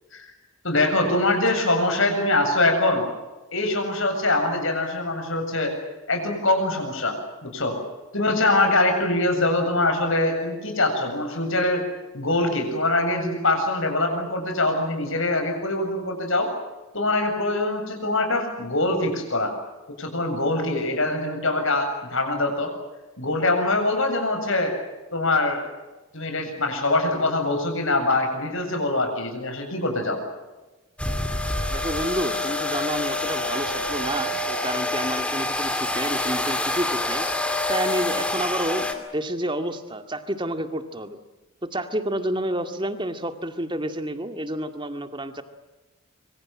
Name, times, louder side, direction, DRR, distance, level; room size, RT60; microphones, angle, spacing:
voice 1, 0.6-3.0 3.5-5.7 6.1-7.8 8.1-11.8 12.1-16.5 16.9-19.5 20.0-22.7 23.2-24.7 25.1-25.7 26.1-30.2, left 2 dB, 60° left, 5 dB, 7.6 m, -23 dB
sound 1, 31.0-38.9, left 2 dB, 5° left, 2.4 m, -26 dB
voice 2, 31.7-37.3 37.7-41.2 41.6-45.4, right 1 dB, 20° right, 8 dB, 2.0 m, -29 dB
26.0 x 25.5 x 7.6 m, 1.1 s
head